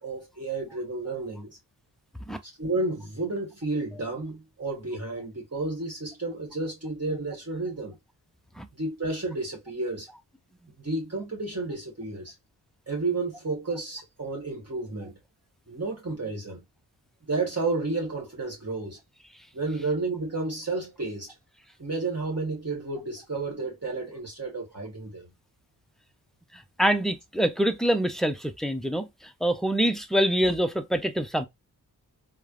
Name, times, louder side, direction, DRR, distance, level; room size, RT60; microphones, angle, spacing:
voice 1, 0.0-1.6 2.4-8.0 8.8-10.1 10.8-12.3 12.9-15.1 15.7-16.6 17.3-19.0 19.5-21.3 21.8-25.3, right 3 dB, 40° right, 1.2 m, -31 dB
voice 2, 26.8-29.1 29.4-31.5, right 1 dB, ahead, 0.4 m, -25 dB
3.2 x 2.1 x 2.3 m
wide cardioid pair, 75°, 40 cm